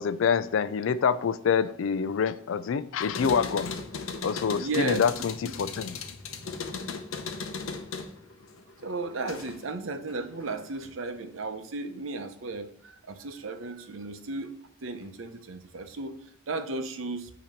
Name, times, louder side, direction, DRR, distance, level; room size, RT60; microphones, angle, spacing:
voice 1, 0.0-3.8 4.2-6.0, left 6 dB, 70° left, 0.4 m, -26 dB
sound 1, 3.0-9.7 10.1-10.9, left 4 dB, 85° left, 0.8 m, -37 dB
voice 2, 4.6-5.0 5.4-5.5 8.8-14.5 14.8-16.2 16.5-17.3, right 3 dB, 75° right, 0.8 m, -34 dB
8.4 x 2.9 x 5.1 m
head